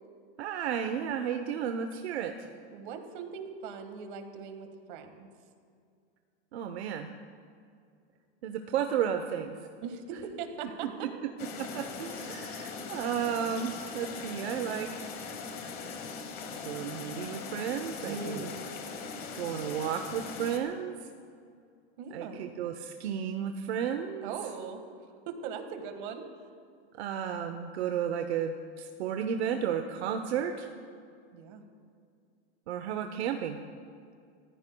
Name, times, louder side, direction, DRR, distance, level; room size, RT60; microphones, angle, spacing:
voice 1, 0.4-2.3 6.5-7.1 8.4-9.6 11.0-11.1 11.6-15.0 16.6-18.5 19.3-20.9 22.1-24.3 27.0-30.7 32.7-33.6, right 8 dB, 75° right, 6 dB, 1.0 m, -33 dB
voice 2, 2.7-5.3 9.8-11.1 18.0-18.5 22.0-22.4 24.2-24.8 25.3-26.2 31.3-31.6, right 6 dB, 50° right, 6 dB, 1.7 m, -40 dB
sound 1, 11.4-20.6, left 5 dB, 25° left, 1.2 m, -40 dB
30.0 x 14.5 x 2.3 m, 2.3 s
supercardioid pair, 165°, 33 cm